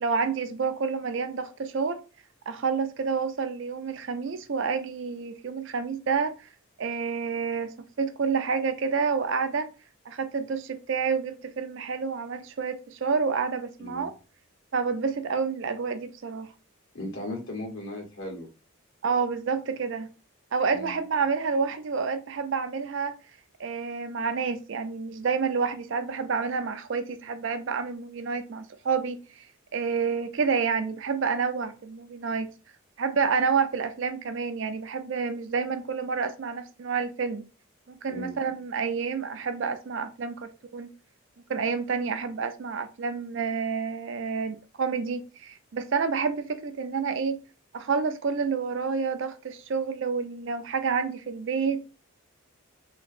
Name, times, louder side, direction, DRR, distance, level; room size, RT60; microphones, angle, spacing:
voice 1, 0.0-2.0 2.5-6.3 6.8-7.7 8.0-9.7 10.1-14.1 14.7-16.5 19.0-20.1 20.5-23.1 23.6-29.2 29.7-32.5 33.0-37.4 37.9-40.9 41.5-47.4 47.7-51.8, right 5 dB, 55° right, 0.4 m, -29 dB
voice 2, 16.9-18.5 20.7-21.0 38.1-38.3, left 1 dB, 65° left, 1.3 m, -37 dB
3.5 x 2.9 x 2.5 m
head